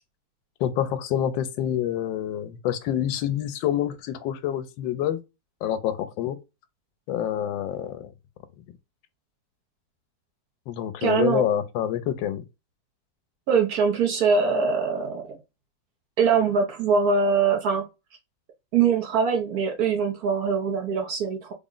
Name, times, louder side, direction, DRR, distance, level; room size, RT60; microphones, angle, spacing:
voice 1, 0.6-5.2 5.6-6.4 7.1-8.1 10.7-12.4, left 10 dB, 85° left, 1.3 m, -27 dB
voice 2, 11.0-11.4 13.5-15.4 16.2-17.8 18.7-21.5, right 5 dB, 65° right, 1.1 m, -23 dB
3.6 x 2.1 x 3.7 m
omnidirectional pair, 2.0 m